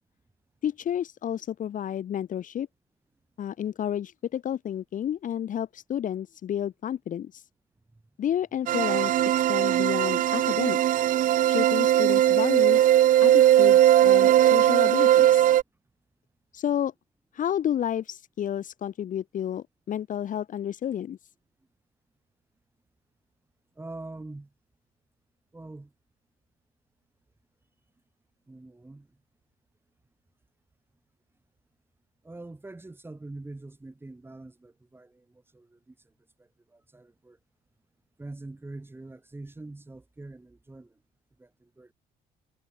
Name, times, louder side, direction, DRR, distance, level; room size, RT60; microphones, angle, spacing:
voice 1, 0.6-2.7 3.4-7.4 8.2-9.2 9.5-11.0 11.5-12.9 13.2-15.5 16.5-16.9 17.3-21.2, left 10 dB, 50° left, 1.6 m, -31 dB
sound 1, 8.7-15.6, right 12 dB, 55° right, 0.6 m, -19 dB
voice 2, 23.8-24.5 25.5-25.9 28.5-29.1 32.2-36.0 36.4-37.4 38.2-40.9 41.4-41.9, right 2 dB, 15° right, 7.4 m, -44 dB
cardioid pair, 110°, 17 cm